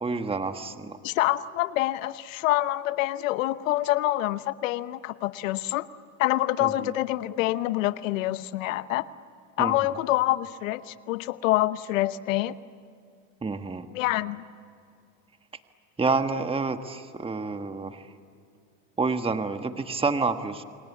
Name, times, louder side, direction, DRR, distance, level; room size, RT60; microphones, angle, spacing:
voice 1, 0.0-1.0 6.6-6.9 9.6-9.7 13.4-13.9 16.0-18.0 19.0-20.6, right 4 dB, 15° right, 8 dB, 1.5 m, -28 dB
voice 2, 1.0-5.9 6.2-9.0 9.6-12.5 13.9-14.4, left 16 dB, 90° left, 14 dB, 1.0 m, -26 dB
29.5 x 23.0 x 8.4 m, 2.5 s
supercardioid pair, 105°, 38 cm